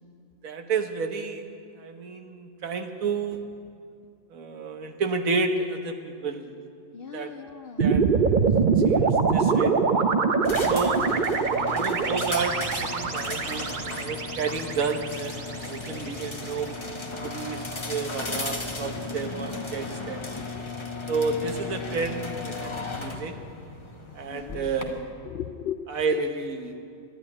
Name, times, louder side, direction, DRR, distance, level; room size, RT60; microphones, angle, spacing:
voice 1, 0.4-1.4 1.8-3.5 4.3-6.4 7.1-7.3 7.8-8.0 8.9-10.0 10.7-11.0 11.6-12.5 12.8-16.7 17.2-20.2 21.1-23.4 24.1-25.1 25.9-26.8, right 4 dB, 80° right, 6 dB, 1.5 m, -31 dB
voice 2, 6.9-9.1 10.9-11.1 18.2-18.3 20.3-21.2 24.3-24.7 25.3-25.9 26.1-26.2, left 9 dB, 65° left, 8 dB, 0.6 m, -39 dB
sound 1, 7.8-16.1, right 5 dB, 45° right, 0.8 m, -24 dB
sound 2, 10.4-24.8, left 3 dB, 20° left, 1.1 m, -35 dB
12.0 x 11.5 x 9.5 m, 2.4 s
omnidirectional pair, 1.4 m